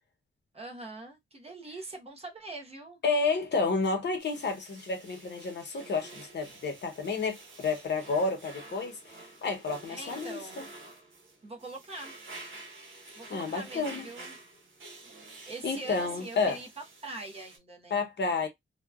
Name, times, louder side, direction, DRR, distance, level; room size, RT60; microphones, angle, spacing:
voice 1, 0.5-3.0 9.9-10.7 11.4-12.1 13.2-14.4 15.5-16.7 17.0-18.0, right 2 dB, 30° right, 0.7 m, -43 dB
voice 2, 3.0-9.1 9.4-10.7 13.3-14.1 15.6-16.6 17.9-18.5, left 4 dB, 60° left, 0.8 m, -30 dB
sound 1, 4.2-17.6, right 2 dB, 75° right, 1.0 m, -49 dB
2.8 x 2.2 x 2.3 m
wide cardioid pair, 170°, 20 cm